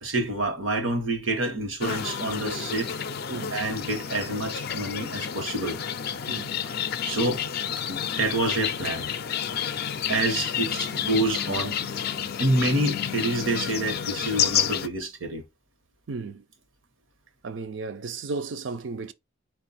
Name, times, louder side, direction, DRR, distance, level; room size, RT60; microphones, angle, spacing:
voice 1, 0.0-2.9 3.5-5.8 7.0-7.4 7.9-9.1 10.1-11.7 12.4-15.4, right 2 dB, 80° right, 1.2 m, -27 dB
sound 1, 1.8-14.9, left 8 dB, 50° left, 0.4 m, -30 dB
voice 2, 16.1-16.4 17.4-19.1, right 4 dB, 65° right, 0.5 m, -34 dB
4.7 x 2.4 x 4.0 m
head